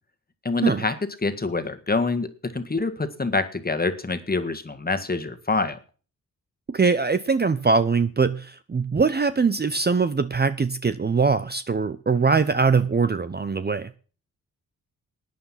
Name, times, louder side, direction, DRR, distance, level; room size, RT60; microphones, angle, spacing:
voice 1, 0.4-5.8, left 3 dB, 25° left, 1.7 m, -26 dB
voice 2, 6.7-13.9, right 4 dB, 30° right, 0.8 m, -22 dB
14.5 x 9.3 x 5.8 m
cardioid pair, 60°, 35 cm